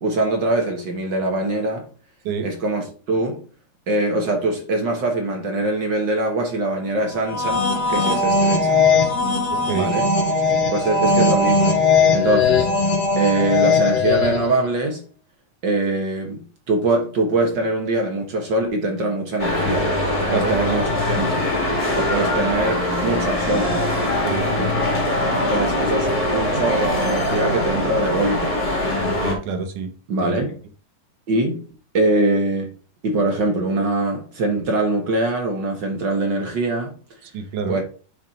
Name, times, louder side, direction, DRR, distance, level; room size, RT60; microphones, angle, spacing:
voice 1, 0.0-1.8 2.4-3.4 3.9-8.8 9.7-10.1 10.7-11.8 12.1-12.7 13.2-15.0 15.6-19.9 20.2-21.5 21.9-23.8 24.6-24.8 25.1-28.6 30.1-30.6 31.3-31.6 31.9-32.7 33.0-36.9 37.7-37.8, right 2 dB, 55° right, 1.2 m, -23 dB
sound 1, 7.2-14.6, left 4 dB, 50° left, 1.6 m, -19 dB
sound 2, 19.4-29.3, left 1 dB, 15° left, 1.6 m, -22 dB
voice 2, 29.2-29.9 30.2-30.3 37.3-37.8, right 6 dB, 70° right, 2.4 m, -26 dB
7.2 x 4.7 x 4.4 m
omnidirectional pair, 4.0 m